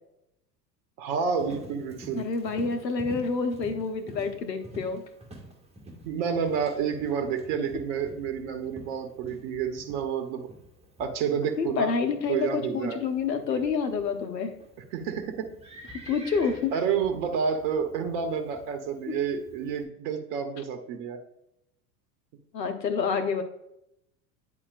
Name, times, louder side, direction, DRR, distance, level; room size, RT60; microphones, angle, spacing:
voice 1, 1.0-2.3 6.0-10.5 11.0-11.9 12.3-13.0 14.9-15.5 16.7-21.2, right 6 dB, 60° right, 6 dB, 1.0 m, -29 dB
Livestock farm animals working animals, 1.4-19.8, right 1 dB, 10° right, 1.7 m, -48 dB
voice 2, 2.1-5.0 11.6-14.5 16.1-16.7 19.1-19.2 22.5-23.4, left 5 dB, 90° left, 8 dB, 0.9 m, -28 dB
9.9 x 4.3 x 2.4 m, 0.80 s
hypercardioid pair, 85°, 49 cm